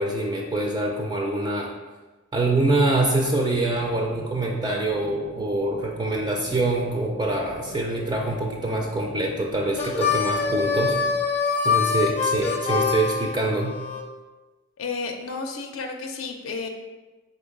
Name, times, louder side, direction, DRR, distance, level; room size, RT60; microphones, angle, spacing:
voice 1, 0.0-1.7 2.3-11.0 11.6-13.8, right 2 dB, 20° right, 0 dB, 0.3 m, -25 dB
sound 1, 2.8-11.1, right 2 dB, 75° right, 0.6 m, -41 dB
Harmonica, 9.7-14.0, left 6 dB, 35° left, 0.6 m, -24 dB
voice 2, 14.8-16.7, left 4 dB, 80° left, 3 dB, 0.4 m, -32 dB
3.8 x 3.8 x 3.6 m, 1.2 s
head